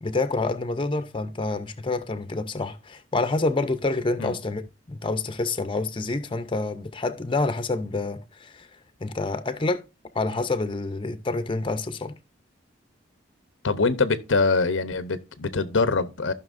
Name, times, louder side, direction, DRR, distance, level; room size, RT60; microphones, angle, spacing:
voice 1, 0.0-4.6 4.9-8.7 9.0-9.8 10.1-12.2, left 3 dB, 25° left, 0.6 m, -27 dB
voice 2, 13.6-16.3, left 3 dB, 90° left, 0.8 m, -23 dB
14.5 x 5.7 x 2.6 m
head